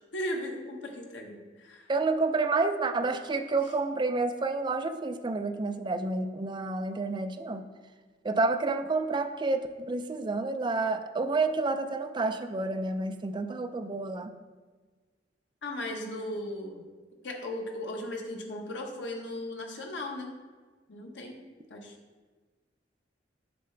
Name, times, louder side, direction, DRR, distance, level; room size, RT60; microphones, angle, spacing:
voice 1, 0.1-1.9 15.6-16.9 17.2-20.3 20.9-21.4 21.7-21.9, left 1 dB, 85° left, 1 dB, 1.1 m, -37 dB
voice 2, 1.9-7.6 8.2-14.3, right 3 dB, 25° right, 7 dB, 0.4 m, -29 dB
6.9 x 6.7 x 3.3 m, 1.4 s
head